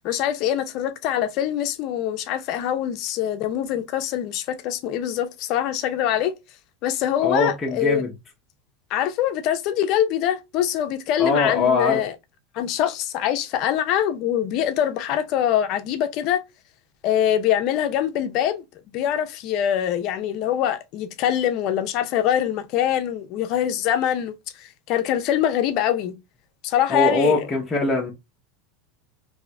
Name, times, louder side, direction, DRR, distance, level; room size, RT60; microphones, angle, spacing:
voice 1, 0.0-6.3 6.8-8.0 8.9-12.1 12.5-16.4 17.0-18.6 18.9-26.1 26.6-27.5, left 10 dB, 50° left, 0.6 m, -24 dB
voice 2, 7.2-8.1 11.2-12.0 26.9-28.1, left 3 dB, 15° left, 0.8 m, -22 dB
2.7 x 2.4 x 3.1 m
supercardioid pair, 130°, 0 cm